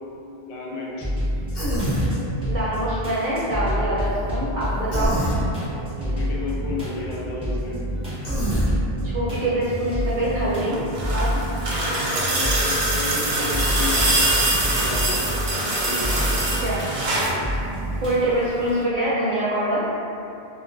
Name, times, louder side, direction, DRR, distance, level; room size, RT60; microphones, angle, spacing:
voice 1, 0.4-1.1 6.0-7.8 12.1-14.4 14.7-15.3 15.7-16.4, left 3 dB, 85° left, -5 dB, 0.9 m, -32 dB
sound 1, 1.0-18.2, equal, 5° right, 0.6 m, -28 dB
Human voice, 1.5-2.1 4.9-5.4 8.2-8.7, equal, 40° left, 0.7 m, -24 dB
voice 2, 2.5-5.2 9.0-10.8 11.1-11.4 16.6-16.8 18.0-19.8, right 1 dB, 60° right, -8 dB, 0.6 m, -24 dB
sound 2, 10.6-17.4 18.7-18.8, right 2 dB, 90° right, 0.9 m, -23 dB
2.2 x 2.2 x 2.5 m, 2.7 s
omnidirectional pair, 1.1 m